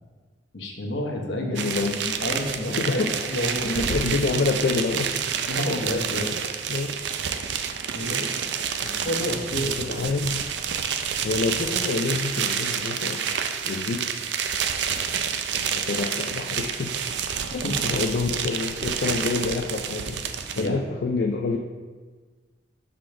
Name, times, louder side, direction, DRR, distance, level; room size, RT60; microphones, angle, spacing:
voice 1, 0.5-1.7 1.9-4.4 5.5-6.3 7.9-8.5 8.9-10.1 17.5-17.8 20.5-20.7, left 1 dB, 75° left, 1 dB, 0.9 m, -30 dB
voice 2, 1.4-2.0 2.8-3.1 3.6-5.2 6.7-7.0 8.8-9.1 9.6-10.5 11.2-13.2 13.6-14.0 15.7-17.0 17.5-20.2 20.6-21.6, left 4 dB, 55° left, 2 dB, 0.3 m, -27 dB
sound 1, 1.5-20.7, right 7 dB, 65° right, 0.4 m, -29 dB
4.9 x 3.8 x 5.8 m, 1.4 s
head